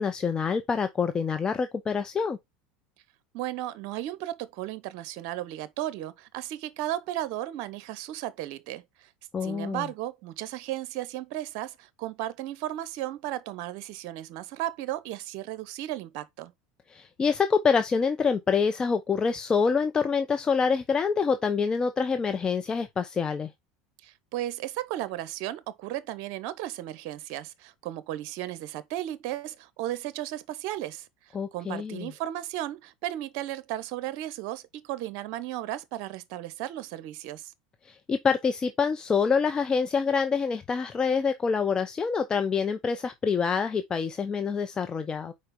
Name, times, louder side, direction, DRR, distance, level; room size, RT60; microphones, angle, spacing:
voice 1, 0.0-2.4 9.3-9.9 16.9-23.5 31.3-32.1 37.9-45.3, left 5 dB, 25° left, 0.7 m, -26 dB
voice 2, 3.3-9.1 9.4-16.5 24.0-37.5, right 13 dB, 60° right, 0.9 m, -35 dB
4.8 x 4.3 x 5.3 m
hypercardioid pair, 95°, 3 cm